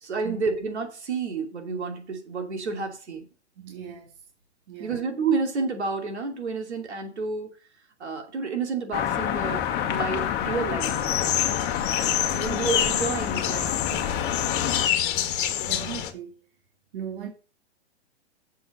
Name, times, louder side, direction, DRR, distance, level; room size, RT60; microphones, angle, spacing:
voice 1, 0.0-3.2 4.8-7.6 8.0-11.3 12.3-14.0, right 4 dB, 80° right, 2.8 m, -30 dB
voice 2, 3.6-4.1 4.7-5.0 12.4-12.6 15.6-16.4 16.9-17.3, right 9 dB, 55° right, 2.1 m, -37 dB
sound 1, 8.9-14.9, left 10 dB, 30° left, 1.3 m, -28 dB
sound 2, 10.8-16.1, left 10 dB, 50° left, 1.5 m, -27 dB
7.1 x 5.8 x 6.4 m
hypercardioid pair, 120°, 33 cm